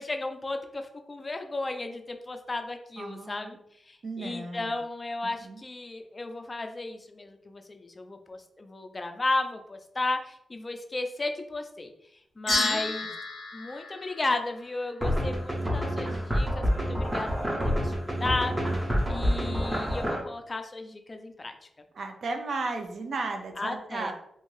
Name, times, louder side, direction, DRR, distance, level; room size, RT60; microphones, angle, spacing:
voice 1, 0.0-3.6 3.9-11.9 12.4-13.1 13.5-17.9 18.2-18.7 19.1-21.5 23.6-24.1, left 2 dB, 30° left, 6 dB, 0.4 m, -34 dB
voice 2, 3.0-3.6 4.0-4.8 5.4-5.6 12.5-12.8 21.9-24.1, right 3 dB, 65° right, 4 dB, 0.5 m, -35 dB
sound 1, 12.5-14.9, left 2 dB, 60° left, 0.7 m, -32 dB
sound 2, 15.0-20.2, equal, 15° right, 0.7 m, -28 dB
2.6 x 2.3 x 3.1 m, 0.74 s
cardioid pair, 75°, 0 cm